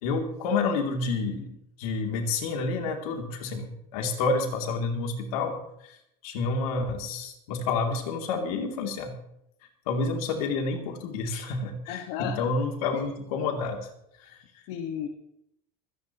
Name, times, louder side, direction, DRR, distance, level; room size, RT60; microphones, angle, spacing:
voice 1, 0.0-5.6 5.8-6.0 6.2-9.1 9.9-13.8 14.3-14.4, left 4 dB, 80° left, 2 dB, 2.9 m, -29 dB
voice 2, 11.9-12.4 14.7-15.1, left 9 dB, 65° left, 2 dB, 1.6 m, -33 dB
25.0 x 10.5 x 3.0 m, 0.77 s
supercardioid pair, 150°, 18 cm